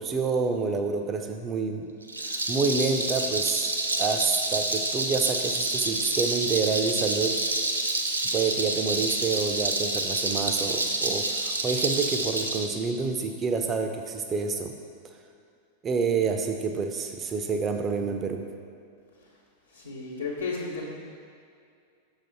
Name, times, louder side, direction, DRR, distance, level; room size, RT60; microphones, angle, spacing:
voice 1, 0.0-1.9 2.3-3.7 4.0-7.4 8.3-14.7 15.8-18.5, right 5 dB, 25° right, 5 dB, 0.5 m, -28 dB
Rattle, 2.0-12.7, right 2 dB, 80° right, 0.4 m, -28 dB
voice 2, 19.7-20.8, left 4 dB, 80° left, -6 dB, 1.0 m, -33 dB
6.2 x 4.1 x 4.0 m, 2.3 s
figure-of-eight pair, 90°, 0 cm